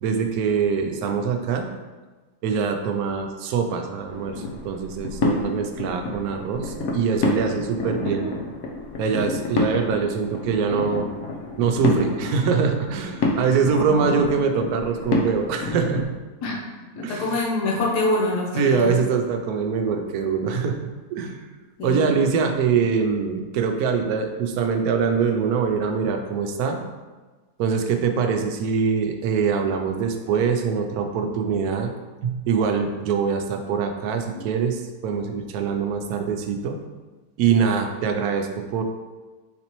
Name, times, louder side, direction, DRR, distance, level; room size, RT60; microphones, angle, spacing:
voice 1, 0.0-1.7 2.4-8.3 9.0-11.1 11.6-16.1 17.0-17.4 18.6-21.4 21.8-26.8 27.6-31.9 32.2-36.8 37.4-38.8, right 6 dB, 75° right, 5 dB, 1.0 m, -23 dB
sound 1, 4.1-16.0, left 2 dB, 65° left, 1.0 m, -28 dB
voice 2, 13.7-14.2 16.4-16.6 16.9-19.0 21.8-22.8 34.3-34.4, left 2 dB, 85° left, -3 dB, 1.4 m, -26 dB
4.2 x 4.1 x 2.9 m, 1.3 s
omnidirectional pair, 1.7 m